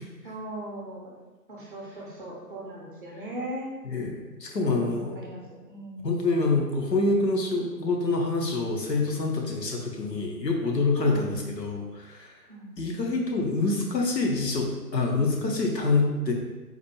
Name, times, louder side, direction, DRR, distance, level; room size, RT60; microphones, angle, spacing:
voice 1, 0.2-1.1 1.5-3.7 4.6-5.4 5.7-6.1 11.0-11.3 12.5-12.7, right 1 dB, 35° right, -3 dB, 0.6 m, -39 dB
voice 2, 3.8-5.2 6.0-12.3 12.8-16.3, left 3 dB, 80° left, 0 dB, 0.9 m, -26 dB
4.1 x 2.1 x 3.0 m, 1.2 s
figure-of-eight pair, 130°, 49 cm